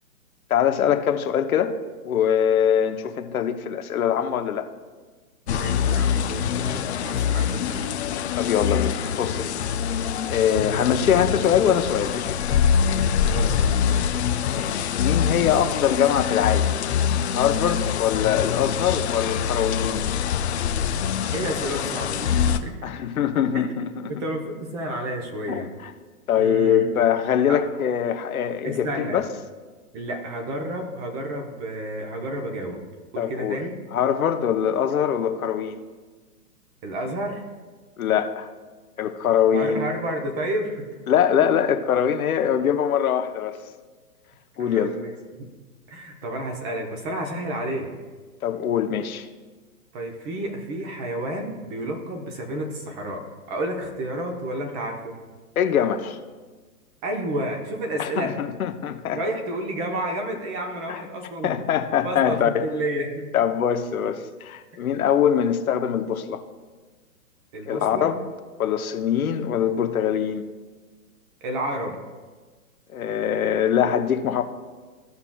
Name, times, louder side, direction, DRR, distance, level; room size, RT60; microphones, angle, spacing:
voice 1, 0.5-1.7 2.0-4.7 8.4-9.6 10.3-12.4 14.5-16.7 17.4-20.0 22.8-24.1 25.5-25.9 26.3-29.3 33.2-33.6 33.9-35.8 38.0-38.5 39.0-39.8 41.1-43.6 44.6-45.0 48.4-49.3 55.6-56.2 58.0-59.2 60.9-61.0 61.4-62.7 63.3-66.4 67.7-68.2 68.6-70.4 72.9-74.4, left 9 dB, 65° left, 7 dB, 0.9 m, -23 dB
sound 1, 5.5-22.6, left 8 dB, 50° left, 0.5 m, -24 dB
voice 2, 5.5-7.9 10.7-10.9 13.3-14.4 21.3-22.7 23.5-23.6 24.1-25.7 26.3-26.9 27.5-27.6 28.6-29.2 29.9-32.8 33.1-33.7 36.8-37.4 39.5-40.8 44.6-45.5 45.9-47.9 49.9-53.2 53.5-55.1 57.0-58.3 59.1-61.5 62.0-63.3 64.7-64.8 67.5-68.1 71.4-72.0, right 1 dB, 25° right, 2 dB, 0.9 m, -31 dB
15.5 x 5.8 x 2.3 m, 1.4 s
hypercardioid pair, 140°, 45 cm